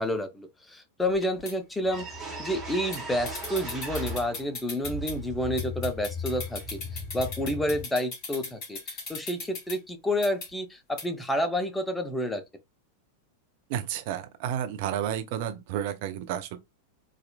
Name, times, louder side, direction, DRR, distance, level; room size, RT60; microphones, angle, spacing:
voice 1, 0.0-2.1 2.4-12.4, left 1 dB, 5° left, 0.5 m, -30 dB
sound 1, 1.1-1.5 2.9-3.0 3.3-5.1 5.6-9.8 10.2-10.5 11.0-11.1, left 4 dB, 35° left, 2.3 m, -38 dB
sound 2, 1.4-1.5 1.8-4.5 4.8-7.8, left 1 dB, 15° right, 1.5 m, -37 dB
voice 2, 13.7-16.6, right 10 dB, 50° right, 0.5 m, -31 dB
4.1 x 2.5 x 2.3 m
figure-of-eight pair, 90°, 0 cm